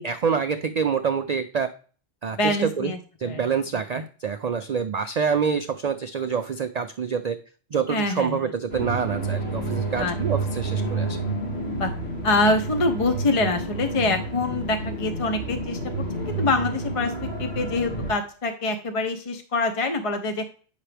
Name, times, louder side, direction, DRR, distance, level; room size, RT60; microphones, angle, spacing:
voice 1, 0.0-1.7 2.2-2.9 3.2-7.4 7.7-11.2, right 6 dB, 80° right, 9 dB, 0.3 m, -26 dB
voice 2, 2.3-3.4 7.9-8.5 10.0-10.2 11.7-11.9 12.2-15.8 16.1-20.4, left 2 dB, 35° left, 7 dB, 0.5 m, -25 dB
sound 1, 8.7-18.1, right 2 dB, 55° left, 2.4 m, -30 dB
8.8 x 5.9 x 3.3 m, 0.41 s
omnidirectional pair, 1.3 m